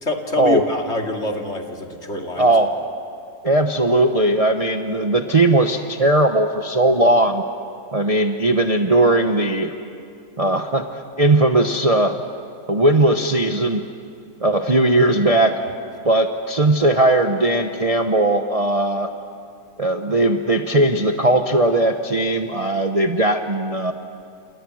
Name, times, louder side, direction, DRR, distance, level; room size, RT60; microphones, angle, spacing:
voice 1, 0.0-2.5, left 2 dB, 40° left, 2 dB, 2.7 m, -26 dB
voice 2, 2.4-2.7 3.4-7.4 7.9-9.7 10.4-12.2 12.7-13.8 14.4-15.6 16.0-19.1 19.8-23.9, right 1 dB, 25° right, 5 dB, 0.9 m, -18 dB
30.0 x 28.5 x 6.4 m, 2.4 s
omnidirectional pair, 1.7 m